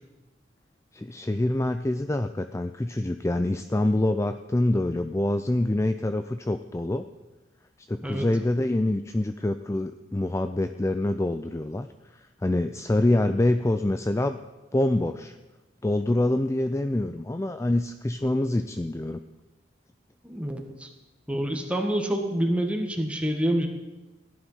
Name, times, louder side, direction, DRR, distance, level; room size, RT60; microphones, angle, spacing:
voice 1, 0.9-7.1 7.9-11.9 12.1-14.4 14.7-15.4 15.8-19.2, left 1 dB, 15° left, 9 dB, 0.4 m, -26 dB
voice 2, 20.2-20.9 21.3-23.7, right 1 dB, 5° right, 2 dB, 1.6 m, -27 dB
15.5 x 11.0 x 5.7 m, 1.1 s
head